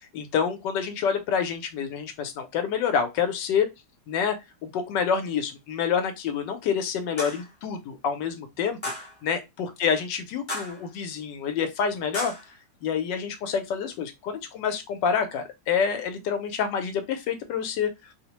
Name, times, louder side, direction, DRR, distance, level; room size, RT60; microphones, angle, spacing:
voice 1, 0.0-3.7 4.1-4.3 4.6-12.3 12.8-17.9, left 7 dB, 75° left, 1.2 m, -27 dB
sound 1, 7.2-7.5 8.8-9.1 10.5-10.9 12.1-12.5, left 1 dB, 20° left, 0.7 m, -33 dB
3.0 x 2.0 x 2.9 m
omnidirectional pair, 2.0 m